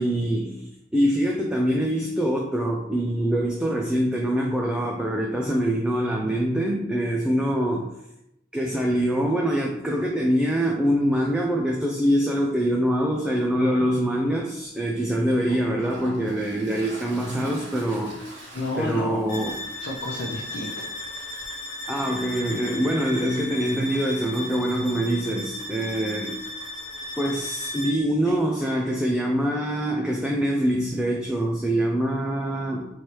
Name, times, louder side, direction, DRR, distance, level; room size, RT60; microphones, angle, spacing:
voice 1, 0.0-7.9 8.5-19.6 21.9-26.4 27.2-32.9, equal, 5° right, -1 dB, 0.3 m, -24 dB
Toilet flush, 14.6-14.7 15.3-21.5, right 1 dB, 70° right, 1.4 m, -45 dB
voice 2, 18.5-19.3 19.7-21.4 28.2-28.3, left 2 dB, 80° left, -4 dB, 0.7 m, -32 dB
sound 1, 19.3-28.1, left 1 dB, 40° left, 1.0 m, -35 dB
4.4 x 3.2 x 3.0 m, 0.83 s
head